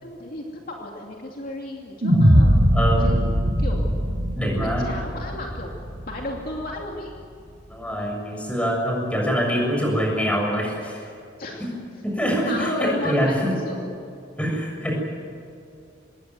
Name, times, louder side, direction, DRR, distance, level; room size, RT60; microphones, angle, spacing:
voice 1, 0.0-3.9 4.6-5.7 6.1-7.1 11.4-11.7 12.4-13.9, left 2 dB, 50° left, -1 dB, 2.7 m, -34 dB
sound 1, 2.0-6.4, equal, 45° right, 3.2 m, -20 dB
voice 2, 2.7-3.2 4.3-4.8 7.7-11.0 11.6-11.7 12.0-13.5 14.4-15.0, equal, 5° left, 0 dB, 7.0 m, -24 dB
25.5 x 21.0 x 9.3 m, 2.5 s
head